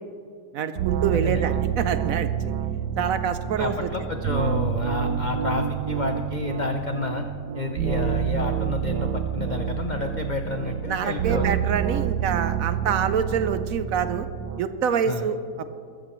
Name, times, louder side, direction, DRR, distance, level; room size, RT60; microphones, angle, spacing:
voice 1, 0.5-2.3 3.0-3.9 10.9-14.3 14.6-15.7, right 7 dB, 65° right, 11 dB, 0.9 m, -26 dB
sound 1, 0.8-14.6, right 8 dB, 85° right, 1.2 m, -28 dB
voice 2, 1.1-1.6 3.6-7.3 7.5-11.5 15.1-15.3, left 3 dB, 70° left, 5 dB, 0.4 m, -30 dB
20.5 x 14.5 x 3.1 m, 2.3 s
omnidirectional pair, 1.8 m